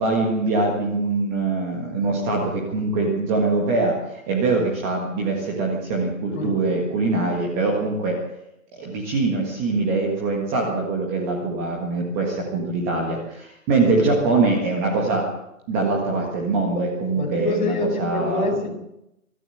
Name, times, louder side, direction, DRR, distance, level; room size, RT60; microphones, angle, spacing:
voice 1, 0.0-4.0 4.3-8.2 8.7-15.2 15.7-17.7 18.0-18.5, right 3 dB, 10° right, -1 dB, 1.7 m, -23 dB
voice 2, 17.1-18.7, left 2 dB, 35° left, 1 dB, 5.4 m, -26 dB
26.5 x 13.5 x 7.9 m, 0.86 s
hypercardioid pair, 170°, 43 cm